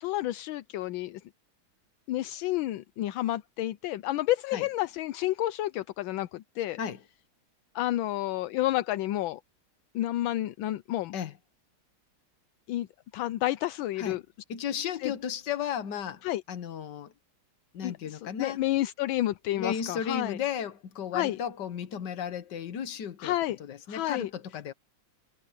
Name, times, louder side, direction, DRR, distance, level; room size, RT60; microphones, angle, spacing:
voice 1, 0.0-1.2 2.1-6.8 7.7-9.4 9.9-11.1 12.7-12.9 13.1-14.2 15.0-15.1 16.2-16.4 17.8-20.4 21.1-21.4 23.2-23.6 23.9-24.3, left 15 dB, 80° left, 1.3 m, -30 dB
voice 2, 14.5-17.1 17.7-18.6 19.5-23.3 23.6-24.7, left 8 dB, 60° left, 1.7 m, -34 dB
omnidirectional pair, 2.3 m